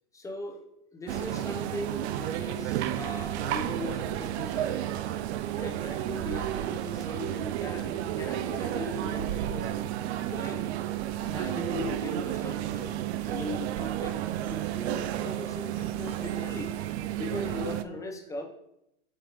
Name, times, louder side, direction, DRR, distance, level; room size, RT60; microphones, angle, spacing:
voice 1, 0.1-0.6 0.9-4.9 5.5-9.9 10.3-10.6 11.2-13.0 13.2-14.2 14.5-18.4, left 2 dB, 10° left, 2 dB, 0.7 m, -39 dB
sound 1, 1.1-17.8, right 12 dB, 60° right, 0.4 m, -32 dB
7.8 x 4.2 x 3.0 m, 0.81 s
hypercardioid pair, 125°, 39 cm